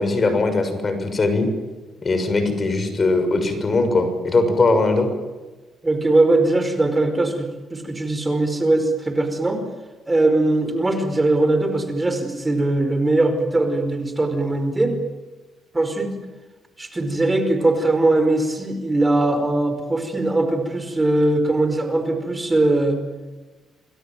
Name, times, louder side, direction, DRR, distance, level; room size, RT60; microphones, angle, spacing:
voice 1, 0.0-1.5 2.0-5.1, left 3 dB, 35° left, 8 dB, 6.6 m, -20 dB
voice 2, 5.8-9.6 10.1-14.9 15.7-16.1 16.8-23.0, right 2 dB, 20° right, 7 dB, 5.0 m, -20 dB
28.5 x 21.5 x 9.3 m, 1.2 s
cardioid pair, 90°, 0 cm